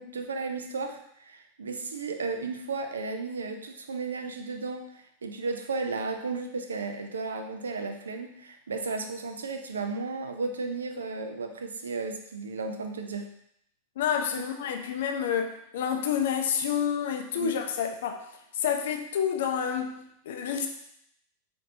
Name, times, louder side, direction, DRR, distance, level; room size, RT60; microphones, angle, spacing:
voice 1, 0.0-13.3 17.3-17.6, right 4 dB, 70° right, 6 dB, 0.4 m, -34 dB
voice 2, 14.0-18.2 18.6-20.7, left 8 dB, 55° left, 5 dB, 0.5 m, -29 dB
5.1 x 2.6 x 2.7 m, 0.74 s
figure-of-eight pair, 90°, 0 cm